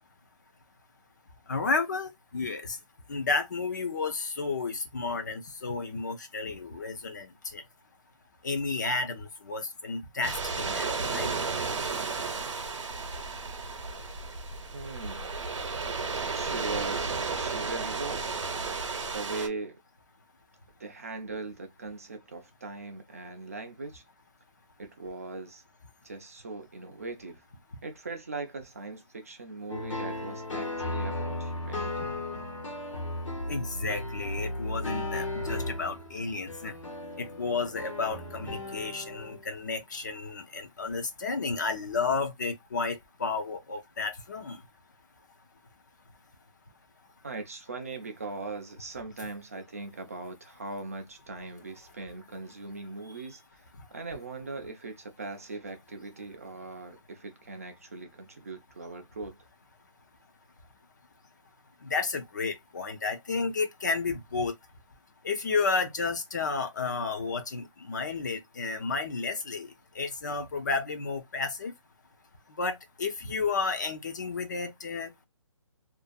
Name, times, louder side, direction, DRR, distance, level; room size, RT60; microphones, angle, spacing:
voice 1, 1.5-2.8 3.1-7.6 8.4-11.3 33.5-36.7 37.2-44.6 61.8-64.5 65.2-69.7 70.0-71.7 72.6-75.3, left 4 dB, 35° left, 0.4 m, -32 dB
sound 1, 10.2-19.5, right 4 dB, 65° right, 0.7 m, -33 dB
voice 2, 14.7-15.3 16.3-18.4 19.1-19.8 20.8-24.0 24.8-25.6 26.0-27.5 27.8-32.1 47.2-59.4, right 3 dB, 30° right, 0.3 m, -40 dB
sound 2, 29.7-39.5, left 1 dB, 70° left, 1.1 m, -35 dB
2.5 x 2.2 x 2.4 m
hypercardioid pair, 165°, 17 cm